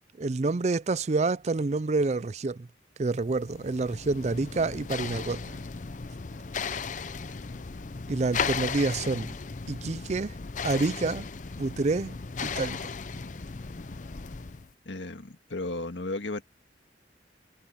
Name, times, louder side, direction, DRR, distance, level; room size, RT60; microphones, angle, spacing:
voice 1, 0.2-2.7 3.0-5.6 8.1-9.3 9.7-10.3 10.6-11.3 11.6-12.2 12.4-12.9, right 3 dB, 40° right, 0.4 m, -28 dB
Pedal whi'l, 3.2-14.7, left 5 dB, 45° left, 0.6 m, -36 dB
voice 2, 14.9-16.4, left 2 dB, 85° left, 1.8 m, -34 dB
head